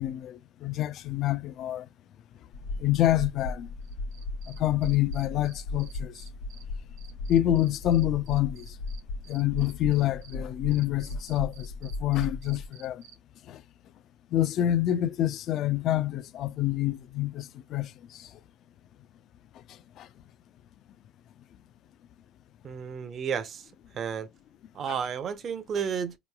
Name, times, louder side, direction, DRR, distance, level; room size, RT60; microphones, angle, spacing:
voice 1, 0.0-1.9 2.8-3.7 4.5-6.1 7.3-8.8 9.3-13.0 13.5-13.6 14.3-18.3 20.0-20.1, left 13 dB, 55° left, 0.3 m, -27 dB
sound 1, 2.5-12.7, left 2 dB, 85° left, 1.1 m, -37 dB
Cricket, 3.8-6.6 7.0-10.3 10.7-13.1, right 10 dB, 85° right, 0.8 m, -52 dB
voice 2, 22.6-24.3 24.7-26.1, right 7 dB, 45° right, 0.6 m, -32 dB
4.6 x 3.0 x 2.2 m
supercardioid pair, 95°, 0 cm